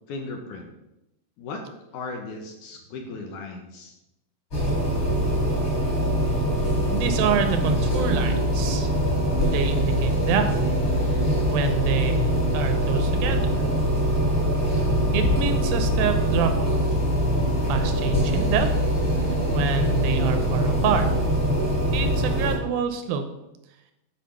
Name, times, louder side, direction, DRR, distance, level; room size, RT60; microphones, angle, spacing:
voice 1, 0.1-0.7 1.4-1.6 1.9-3.9, left 3 dB, 70° left, 2 dB, 2.1 m, -36 dB
sound 1, 4.5-22.6, equal, 35° left, 3.9 m, -23 dB
voice 2, 6.9-8.9 9.4-10.6 10.9-11.2 11.5-13.5 15.1-16.8 17.7-18.7 19.2-21.1 21.9-23.2, right 6 dB, 80° right, 7 dB, 2.6 m, -27 dB
8.7 x 5.0 x 6.5 m, 0.92 s
omnidirectional pair, 4.2 m